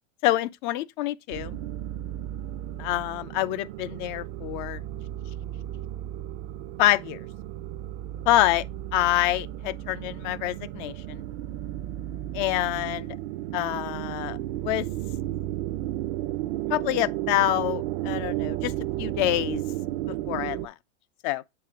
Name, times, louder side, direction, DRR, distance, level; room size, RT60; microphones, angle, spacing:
voice 1, 0.2-1.6 2.8-4.8 6.8-7.2 8.3-8.6 8.9-11.2 12.3-13.1 13.5-14.4 14.6-14.9 16.7-19.6 20.3-20.7 21.2-21.4, left 15 dB, 40° left, 0.4 m, -26 dB
sound 1, 1.3-20.7, right 14 dB, 50° right, 0.6 m, -34 dB
7.7 x 3.6 x 3.6 m
hypercardioid pair, 130°, 39 cm